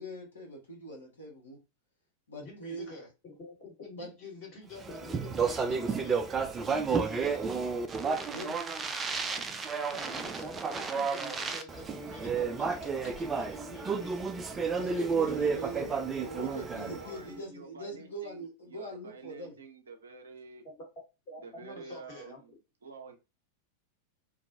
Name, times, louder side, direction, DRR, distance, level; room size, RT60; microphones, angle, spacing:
voice 1, 0.0-1.6 2.3-3.0 4.0-4.1 7.2-7.5 8.3-8.6 14.7-19.5, right 1 dB, 70° left, 1.1 m, -42 dB
voice 2, 2.4-6.2 6.9-7.4 9.9-14.2 15.2-15.6 20.6-20.7 21.3-22.4, left 2 dB, 40° left, 1.5 m, -47 dB
Speech, 4.8-17.2, right 5 dB, 20° right, 0.3 m, -32 dB
voice 3, 15.7-20.7 21.4-23.2, right 4 dB, 70° right, 0.6 m, -48 dB
2.6 x 2.2 x 2.7 m
figure-of-eight pair, 90°, 0 cm